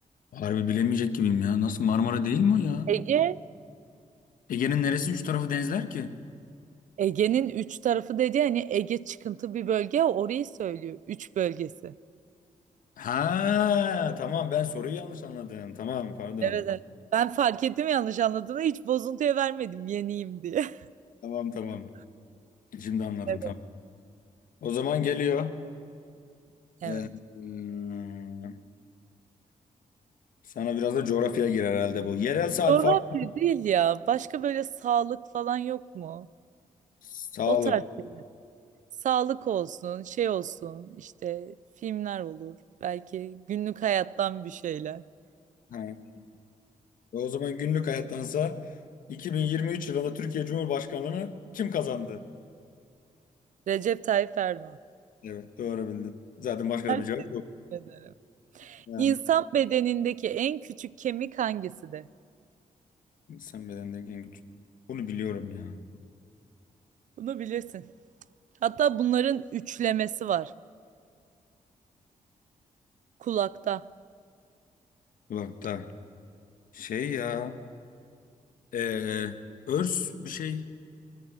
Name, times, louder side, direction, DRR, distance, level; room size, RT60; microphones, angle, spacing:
voice 1, 0.3-2.9 4.5-6.1 13.0-16.6 21.2-21.9 22.7-23.6 24.6-25.6 26.8-28.5 30.5-32.9 37.0-37.8 45.7-46.0 47.1-48.6 49.1-52.2 55.2-57.4 58.9-59.2 63.3-64.3 64.9-65.8 75.3-75.9 76.7-77.6 78.7-79.4 79.7-80.7, left 8 dB, 90° left, 1.5 m, -29 dB
voice 2, 2.9-3.4 7.0-11.9 16.4-16.8 17.1-20.8 23.3-23.5 26.8-27.0 32.7-36.3 37.5-37.8 39.0-41.5 41.8-42.6 42.8-45.0 53.7-54.8 56.9-57.0 57.7-58.1 58.6-62.1 67.2-67.8 68.6-70.5 73.2-73.8, right 10 dB, 65° right, 0.5 m, -28 dB
24.5 x 22.5 x 9.6 m
wide cardioid pair, 160°, 14 cm